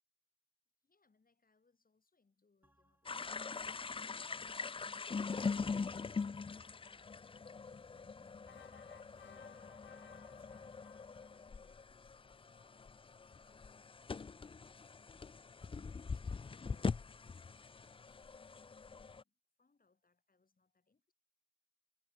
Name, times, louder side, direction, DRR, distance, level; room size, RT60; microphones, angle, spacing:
voice 1, 0.8-4.4 11.3-13.1 13.4-15.1 15.4-17.5 17.9-18.2 19.2-21.1, left 4 dB, 50° left, 7.4 m, -78 dB
sound 1, 2.6-10.8, right 1 dB, 10° right, 3.1 m, -70 dB
sound 2, 3.1-19.2, left 5 dB, 30° left, 0.4 m, -43 dB
sound 3, 8.5-11.9, left 8 dB, 80° left, 0.7 m, -61 dB
cardioid pair, 65°, 19 cm